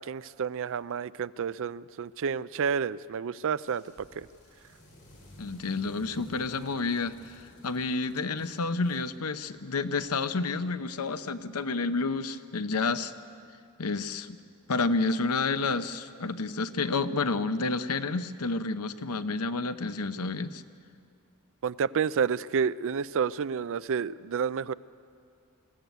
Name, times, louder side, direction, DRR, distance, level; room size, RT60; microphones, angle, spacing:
voice 1, 0.0-3.8 4.2-4.3 21.6-24.7, right 6 dB, 60° right, 17 dB, 0.4 m, -30 dB
sound 1, 3.5-10.0, equal, 60° left, 7.8 m, -55 dB
voice 2, 5.4-13.1 13.8-14.4 14.7-20.6, left 3 dB, 90° left, 11 dB, 0.8 m, -30 dB
21.5 x 15.5 x 9.3 m, 2.4 s
head